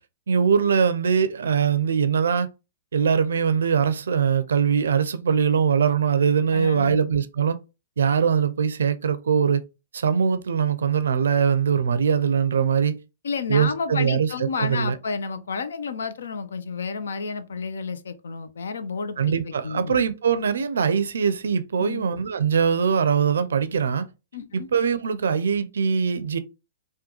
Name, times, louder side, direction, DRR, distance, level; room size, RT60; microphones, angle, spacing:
voice 1, 0.3-2.5 2.9-7.6 8.0-9.6 9.9-13.0 13.5-14.3 14.6-15.0 19.2-24.1 24.5-26.4, right 7 dB, 80° right, 0.4 m, -22 dB
voice 2, 6.5-7.0 13.2-20.0 21.8-22.0 24.3-24.7, left 5 dB, 80° left, 0.5 m, -31 dB
3.6 x 2.2 x 2.9 m
hypercardioid pair, 120°, 0 cm